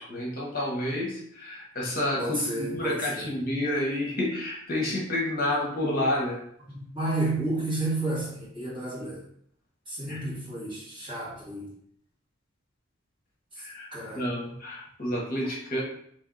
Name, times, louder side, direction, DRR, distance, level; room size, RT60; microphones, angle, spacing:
voice 1, 0.0-6.4 10.1-10.3 13.6-13.9 14.1-15.8, left 1 dB, 45° left, -3 dB, 1.0 m, -29 dB
voice 2, 2.2-3.3 6.7-9.2 9.9-11.7 13.9-14.2, right 2 dB, 25° right, -8 dB, 1.8 m, -31 dB
3.5 x 3.3 x 3.8 m, 0.67 s
head